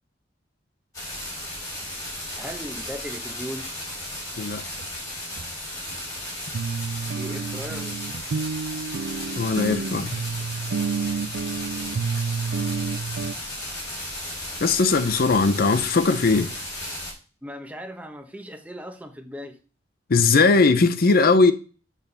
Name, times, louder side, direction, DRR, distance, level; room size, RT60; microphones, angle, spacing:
sound 1, 0.9-17.1, left 1 dB, 20° left, 4.5 m, -35 dB
voice 1, 2.4-3.7 7.1-8.0 17.4-19.6, equal, 10° right, 1.0 m, -37 dB
sound 2, 4.8-4.9 5.4-5.5 5.9-6.0 6.5-13.3, right 5 dB, 80° right, 0.4 m, -29 dB
voice 2, 9.4-10.2 14.6-16.5 20.1-21.5, left 4 dB, 55° left, 0.6 m, -19 dB
8.3 x 3.4 x 6.7 m
head